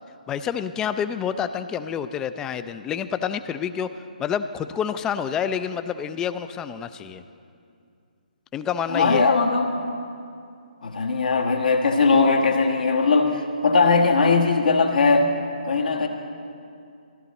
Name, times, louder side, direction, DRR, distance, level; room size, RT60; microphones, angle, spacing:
voice 1, 0.3-7.2 8.5-9.3, left 8 dB, 10° left, 11 dB, 0.3 m, -28 dB
voice 2, 8.9-9.7 10.8-15.3 15.7-16.1, left 4 dB, 70° left, 3 dB, 1.3 m, -19 dB
14.0 x 12.5 x 4.1 m, 2.5 s
figure-of-eight pair, 145°, 5 cm